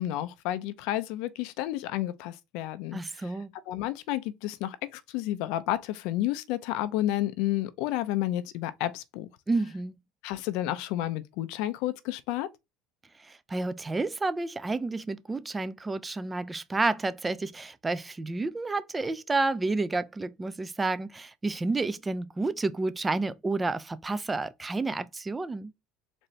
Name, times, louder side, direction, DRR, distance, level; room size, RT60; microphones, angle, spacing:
voice 1, 0.0-3.3 3.7-9.3 10.2-12.5, left 14 dB, 70° left, 0.5 m, -31 dB
voice 2, 2.9-3.5 9.5-10.0 13.2-25.7, right 3 dB, 15° right, 0.4 m, -30 dB
4.1 x 2.6 x 3.1 m
supercardioid pair, 110°, 0 cm